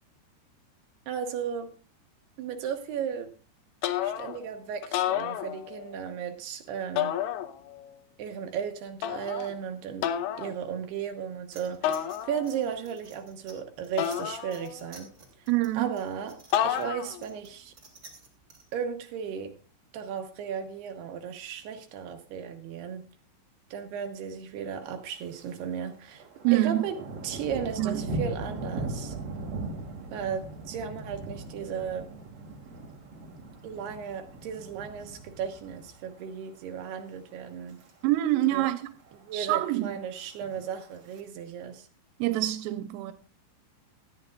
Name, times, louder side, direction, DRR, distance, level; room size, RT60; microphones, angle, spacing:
voice 1, 1.1-1.7 2.4-3.3 4.0-7.1 8.2-10.1 10.4-15.1 15.7-17.7 18.7-19.6 19.9-23.0 23.7-26.3 26.5-27.0 27.2-29.2 30.1-32.1 33.6-37.8 38.5-38.7 39.2-41.9, right 7 dB, 70° right, 2.7 m, -35 dB
sound 1, 3.8-4.5 4.8-6.0 7.0-7.9 9.0-9.5 10.0-10.5 11.8-12.7 14.0-15.0 16.5-17.3, left 10 dB, 80° left, 2.9 m, -30 dB
sound 2, 11.5-18.7, right 4 dB, 20° right, 2.8 m, -52 dB
voice 2, 15.5-15.9 26.4-26.8 27.8-28.0 38.0-38.9 39.3-39.9 42.2-43.1, right 16 dB, 90° right, 3.3 m, -26 dB
Thunder, 25.1-25.6 25.9-36.3 36.7-37.0 37.5-37.9 38.2-38.3 38.4-38.5 38.9-39.5 40.3-41.2, right 2 dB, 45° right, 2.4 m, -39 dB
18.5 x 14.0 x 2.4 m
omnidirectional pair, 5.7 m